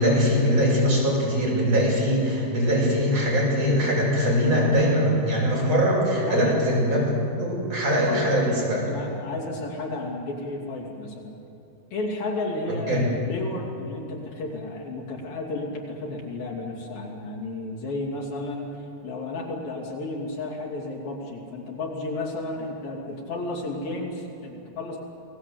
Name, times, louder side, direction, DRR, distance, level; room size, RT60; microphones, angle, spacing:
voice 1, 0.0-7.0 7.4-8.8 12.9-13.0, equal, 35° right, -4 dB, 8.2 m, -22 dB
voice 2, 6.2-6.6 8.1-11.3 11.9-25.0, left 2 dB, 60° left, -4 dB, 4.7 m, -32 dB
29.0 x 19.5 x 7.9 m, 2.7 s
omnidirectional pair, 4.9 m